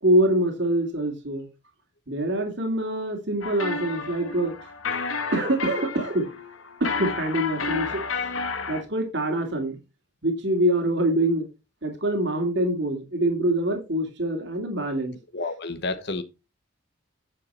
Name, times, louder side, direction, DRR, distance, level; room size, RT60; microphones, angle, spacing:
voice 1, 0.0-1.5 2.1-4.6 4.9-5.0 5.3-6.3 6.8-8.3 8.7-9.8 10.2-11.4 11.8-15.1, right 1 dB, 55° right, 2.5 m, -25 dB
sound 1, 3.4-8.8, left 4 dB, 75° left, 1.7 m, -31 dB
voice 2, 15.3-16.2, left 3 dB, 55° left, 1.0 m, -30 dB
9.7 x 6.9 x 4.4 m
head